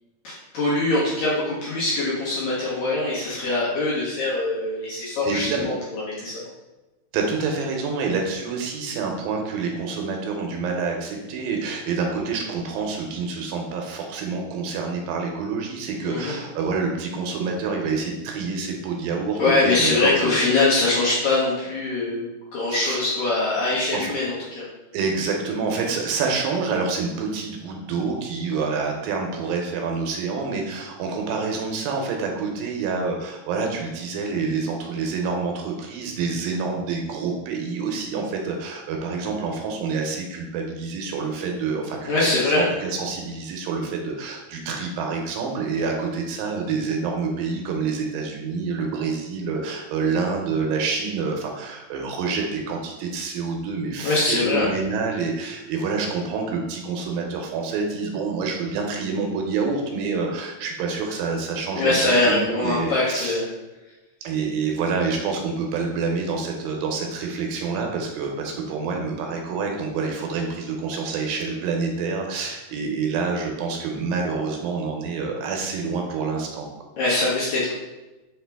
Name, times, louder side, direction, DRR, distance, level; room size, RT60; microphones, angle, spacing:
voice 1, 0.2-6.4 16.0-16.4 19.4-24.7 42.1-42.7 54.0-54.7 61.7-63.5 77.0-77.7, left 2 dB, 65° left, -7 dB, 2.0 m, -23 dB
voice 2, 5.2-5.7 7.1-20.4 22.7-23.0 23.9-24.1 24.9-63.4 64.2-76.7, right 4 dB, 80° right, 2 dB, 2.3 m, -27 dB
5.7 x 2.8 x 3.4 m, 1.1 s
omnidirectional pair, 4.2 m